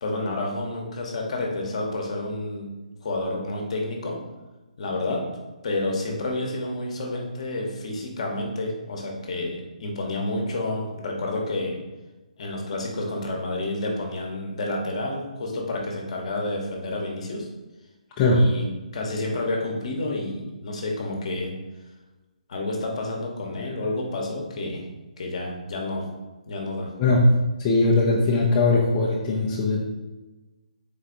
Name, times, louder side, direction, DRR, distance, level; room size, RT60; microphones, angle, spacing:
voice 1, 0.0-2.7 3.0-4.2 4.8-5.2 5.6-11.8 12.4-17.5 18.3-18.6 18.9-21.5 22.5-24.9 25.2-26.0 26.5-26.9, left 2 dB, 50° left, 0 dB, 1.0 m, -29 dB
voice 2, 18.2-18.5 27.0-29.8, left 2 dB, 25° left, -5 dB, 0.5 m, -20 dB
3.9 x 3.3 x 3.8 m, 1.1 s
hypercardioid pair, 150°, 4 cm